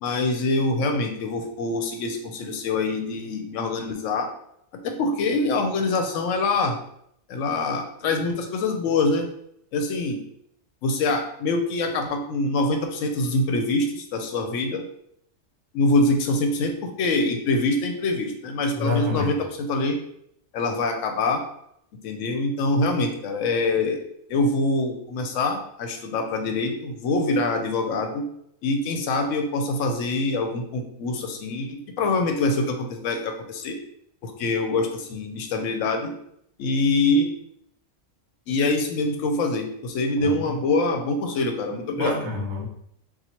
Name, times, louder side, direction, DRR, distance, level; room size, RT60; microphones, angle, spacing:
voice 1, 0.0-4.3 4.8-6.8 7.3-9.3 9.7-10.2 10.8-14.8 15.7-20.0 20.5-21.4 22.0-24.0 24.3-28.2 28.6-33.8 34.2-36.1 36.6-37.3 38.5-42.2, left 2 dB, 75° left, 4 dB, 0.9 m, -24 dB
voice 2, 18.7-19.3 40.2-40.4 41.9-42.6, left 3 dB, 25° right, -3 dB, 0.7 m, -27 dB
2.8 x 2.4 x 4.2 m, 0.72 s
omnidirectional pair, 1.3 m